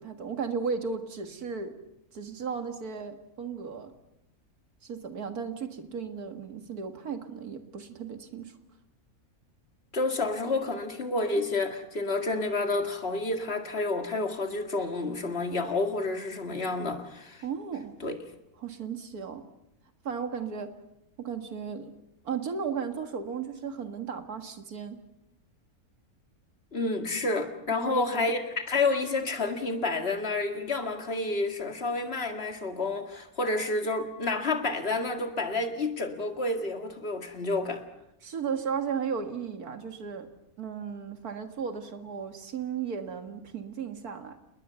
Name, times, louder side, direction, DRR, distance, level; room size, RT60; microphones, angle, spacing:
voice 1, 0.0-1.8 2.1-3.9 4.8-8.6 17.4-18.0 18.6-19.4 20.0-20.7 21.2-21.9 22.2-25.0 27.7-28.3 38.2-40.3 40.6-44.4, right 6 dB, 85° right, 2.3 m, -35 dB
voice 2, 9.9-17.4 18.0-18.1 26.7-37.8, left 3 dB, 45° left, 2.3 m, -29 dB
28.5 x 20.5 x 6.9 m
omnidirectional pair, 1.5 m